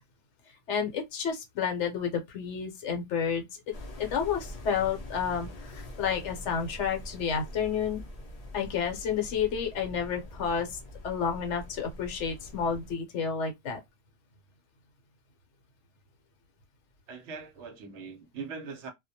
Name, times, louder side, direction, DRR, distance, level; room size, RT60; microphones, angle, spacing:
voice 1, 0.7-8.0 8.5-10.8 11.0-13.8, left 7 dB, 70° left, 0.9 m, -30 dB
sound 1, 3.7-12.9, left 1 dB, 50° left, 0.4 m, -44 dB
voice 2, 17.1-18.9, right 5 dB, 70° right, 0.8 m, -41 dB
2.2 x 2.1 x 2.7 m
omnidirectional pair, 1.3 m